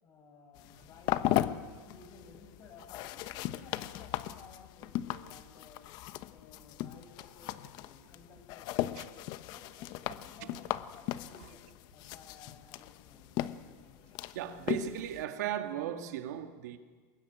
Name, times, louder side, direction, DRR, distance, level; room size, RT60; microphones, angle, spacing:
voice 1, 0.0-5.8 6.3-11.6 11.9-14.2, left 4 dB, 35° left, 7.2 m, -56 dB
sound 1, 0.6-15.2, left 14 dB, 50° left, 1.0 m, -37 dB
voice 2, 14.3-16.8, right 10 dB, 85° right, 2.0 m, -36 dB
23.5 x 21.0 x 9.3 m
supercardioid pair, 145°, 9 cm